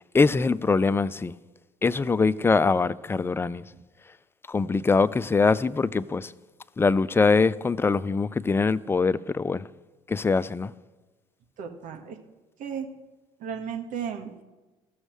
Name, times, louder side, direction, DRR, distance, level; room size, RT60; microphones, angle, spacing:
voice 1, 0.1-1.3 1.8-3.6 4.5-6.3 6.8-9.7 10.1-10.7, left 4 dB, 15° left, 0.4 m, -23 dB
voice 2, 11.6-12.2 12.6-12.9 13.4-14.4, right 7 dB, 60° right, 1.4 m, -34 dB
16.0 x 6.4 x 3.1 m
hypercardioid pair, 60°, 15 cm